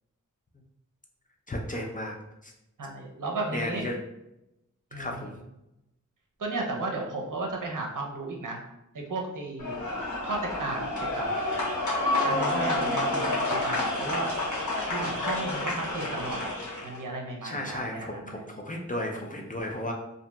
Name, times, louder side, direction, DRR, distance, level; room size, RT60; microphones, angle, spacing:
voice 1, 1.5-2.2 2.4-2.5 3.5-4.0 5.0-5.3 17.4-19.9, left 1 dB, 25° left, 0 dB, 0.4 m, -34 dB
voice 2, 2.8-3.9 4.9-5.2 6.4-8.6 8.9-9.8 10.2-11.3 12.2-13.2 13.5-14.3 14.8-16.5 16.8-18.5, right 2 dB, 75° right, 0 dB, 0.6 m, -34 dB
sound 1, 9.6-17.0, left 2 dB, 70° left, 0.9 m, -29 dB
2.8 x 2.6 x 2.2 m, 0.89 s
wide cardioid pair, 65°, 31 cm